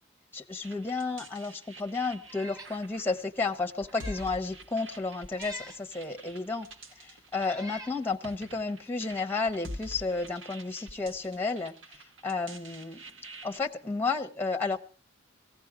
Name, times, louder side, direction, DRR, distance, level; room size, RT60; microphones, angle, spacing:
voice 1, 0.3-6.7 7.3-11.7 12.2-13.0 13.4-14.8, left 3 dB, 10° left, 6 dB, 0.8 m, -32 dB
sound 1, 0.6-13.6, right 1 dB, 75° right, 1.4 m, -47 dB
Meow, 2.3-2.8 3.2-3.3 3.8-4.4 5.3-5.8 6.7-6.8 7.4-8.0, left 1 dB, 20° right, 2.0 m, -45 dB
18.0 x 16.0 x 4.8 m, 0.39 s
head